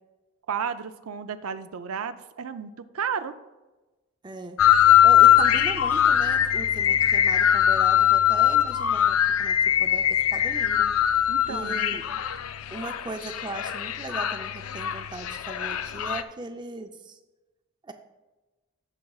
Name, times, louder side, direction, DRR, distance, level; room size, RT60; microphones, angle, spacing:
voice 1, 0.5-3.3 11.3-12.0, right 7 dB, 90° right, 10 dB, 0.5 m, -33 dB
voice 2, 4.2-4.6 5.0-10.9 11.5-12.0 12.7-17.2 17.8-17.9, right 2 dB, 20° right, 6 dB, 0.5 m, -38 dB
sound 1, 4.6-16.2, left 10 dB, 85° left, 0.4 m, -21 dB
15.5 x 5.8 x 2.4 m, 1.2 s
head